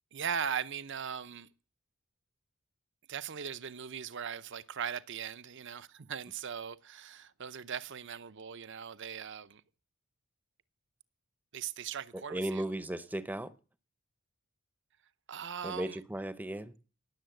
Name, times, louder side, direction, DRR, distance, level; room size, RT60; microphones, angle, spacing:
voice 1, 0.1-1.5 3.1-9.6 11.5-12.7 15.3-16.0, right 7 dB, 55° right, 0.7 m, -39 dB
voice 2, 12.1-13.5 15.6-16.7, right 1 dB, 10° right, 0.7 m, -36 dB
18.5 x 7.3 x 7.8 m
head